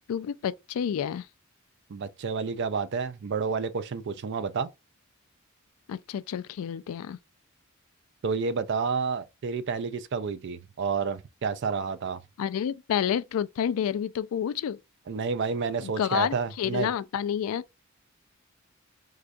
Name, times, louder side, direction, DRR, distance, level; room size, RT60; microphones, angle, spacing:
voice 1, 0.1-1.3 5.9-7.2 12.4-14.8 15.8-17.6, left 8 dB, 80° left, 0.3 m, -29 dB
voice 2, 1.9-4.7 8.2-12.2 15.1-16.9, right 5 dB, 55° right, 0.4 m, -30 dB
4.8 x 2.2 x 2.5 m
head